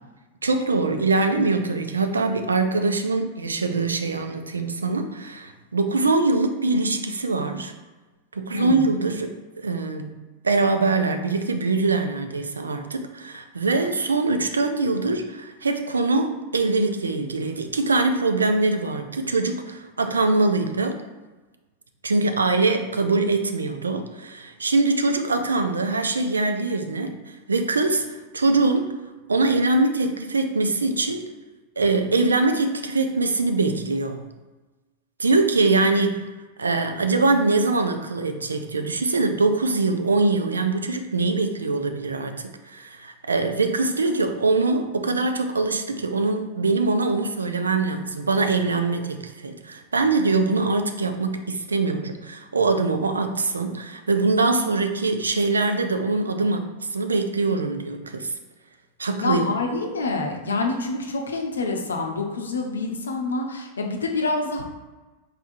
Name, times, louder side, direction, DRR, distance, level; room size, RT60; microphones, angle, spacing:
voice 1, 0.4-7.7 8.3-9.3 9.6-10.1 10.4-21.0 22.0-27.2 27.5-28.9 29.3-31.2 31.8-34.2 35.2-36.3 36.6-58.3 59.0-59.4, right 3 dB, 75° right, 7 dB, 0.4 m, -23 dB
voice 2, 8.5-8.9 59.2-64.6, left 3 dB, 70° left, 2 dB, 0.6 m, -27 dB
4.2 x 3.5 x 2.6 m, 1.2 s
figure-of-eight pair, 90°, 0 cm